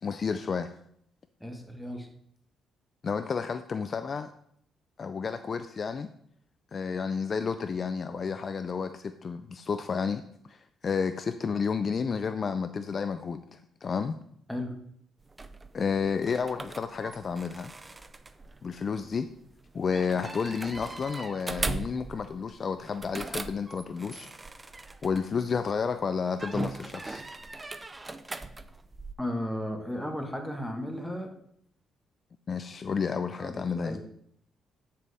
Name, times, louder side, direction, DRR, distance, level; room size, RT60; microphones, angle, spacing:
voice 1, 0.0-0.7 3.0-4.3 5.0-6.1 6.7-10.2 10.5-14.2 15.7-17.7 18.6-19.3 19.7-24.3 25.0-27.2 32.5-34.0, left 5 dB, 45° left, 11 dB, 0.4 m, -31 dB
voice 2, 1.4-2.1 14.5-14.8 29.2-31.3 33.4-34.1, left 1 dB, 5° left, 3 dB, 1.5 m, -35 dB
sound 1, 15.2-25.7 26.4-29.1, right 3 dB, 20° right, 0.5 m, -39 dB
8.7 x 6.7 x 3.5 m, 0.68 s
cardioid pair, 90°, 0 cm